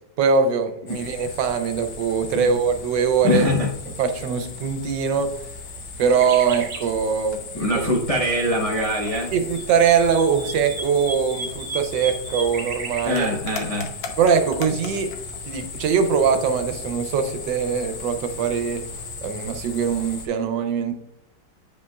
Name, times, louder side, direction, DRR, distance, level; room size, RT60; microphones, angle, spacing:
voice 1, 0.2-3.4 4.0-5.3 6.0-7.8 9.3-13.3 14.2-15.1 15.5-18.8 19.2-20.9, right 6 dB, 75° right, 8 dB, 1.3 m, -22 dB
sound 1, 0.9-20.3, left 4 dB, 80° left, 1.5 m, -36 dB
voice 2, 3.2-3.7 7.5-9.3 13.0-13.9, left 1 dB, 65° left, -3 dB, 0.3 m, -23 dB
sound 2, 6.1-6.9 9.3-13.0, right 3 dB, 45° right, 0.6 m, -34 dB
8.4 x 5.2 x 2.3 m, 0.83 s
omnidirectional pair, 2.1 m